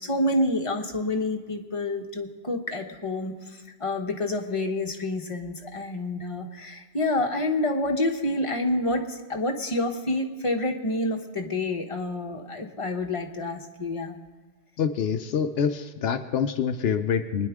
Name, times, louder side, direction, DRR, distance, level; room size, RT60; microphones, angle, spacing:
voice 1, 0.0-14.2, left 2 dB, 30° left, 3 dB, 1.1 m, -28 dB
voice 2, 14.8-17.5, left 7 dB, 75° left, 8 dB, 0.8 m, -26 dB
23.0 x 10.0 x 3.5 m, 1.3 s
omnidirectional pair, 1.1 m